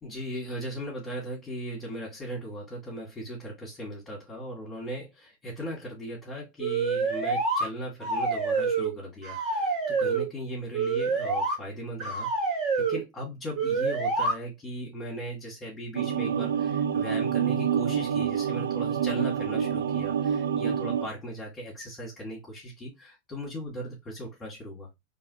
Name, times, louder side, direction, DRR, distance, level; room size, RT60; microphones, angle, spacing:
voice 1, 0.0-24.9, equal, 15° left, 2.2 m, -38 dB
sound 1, 6.6-7.7 8.0-8.9 9.2-10.3 10.7-11.5 12.0-13.0 13.6-14.3, right 4 dB, 30° right, 2.7 m, -27 dB
sound 2, 15.9-21.1, right 8 dB, 60° right, 0.4 m, -27 dB
4.7 x 2.9 x 2.7 m
figure-of-eight pair, 90°, 0 cm